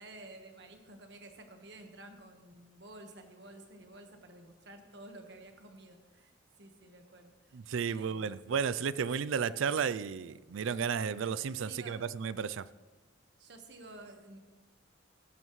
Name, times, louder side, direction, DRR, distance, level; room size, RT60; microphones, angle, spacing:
voice 1, 0.0-6.3 6.6-7.6 7.9-8.6 11.2-11.3 11.7-12.0 13.4-14.4, right 2 dB, 60° right, 5 dB, 1.4 m, -52 dB
voice 2, 7.5-12.7, right 6 dB, 90° right, 18 dB, 0.4 m, -33 dB
17.0 x 10.5 x 3.2 m, 1.2 s
head